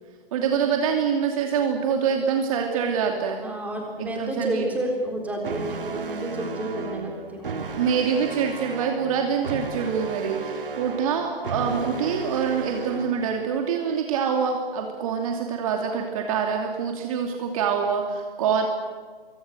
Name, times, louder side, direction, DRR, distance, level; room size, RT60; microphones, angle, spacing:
voice 1, 0.3-3.4 4.0-4.7 7.7-18.7, right 6 dB, 35° right, 3 dB, 2.7 m, -25 dB
voice 2, 3.4-7.5 10.7-10.8, right 1 dB, 5° right, 1 dB, 3.9 m, -30 dB
sound 1, 5.4-13.4, right 4 dB, 60° right, 2.6 m, -34 dB
24.5 x 24.0 x 6.6 m, 1.5 s
figure-of-eight pair, 140°, 30 cm